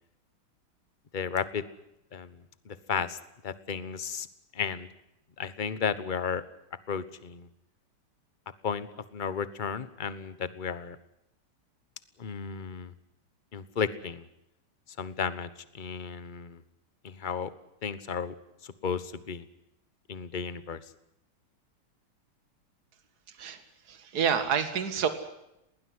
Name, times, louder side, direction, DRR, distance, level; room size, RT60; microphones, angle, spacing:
voice 1, 1.1-1.6 2.1-2.4 2.6-3.2 3.4-4.3 4.5-4.9 5.4-6.4 6.9-7.5 8.6-8.9 9.1-11.0 12.2-12.9 13.5-14.3 15.0-15.5 15.7-16.6 17.0-17.5 17.8-18.3 18.6-19.4 20.1-20.8, left 6 dB, 30° left, 14 dB, 0.9 m, -33 dB
voice 2, 23.9-25.1, right 7 dB, 45° right, 9 dB, 2.4 m, -28 dB
20.5 x 19.0 x 9.7 m, 0.83 s
omnidirectional pair, 2.4 m